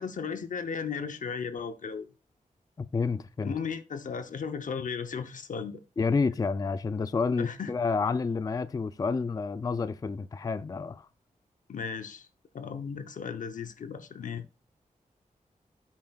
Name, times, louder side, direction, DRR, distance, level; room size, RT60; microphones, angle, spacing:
voice 1, 0.0-2.1 3.4-5.8 7.4-7.7 11.7-12.3 12.5-14.5, left 6 dB, 65° left, 0.7 m, -35 dB
voice 2, 2.8-3.6 6.0-11.1, left 4 dB, 25° left, 0.3 m, -29 dB
9.5 x 8.4 x 2.3 m
wide cardioid pair, 175°, 14 cm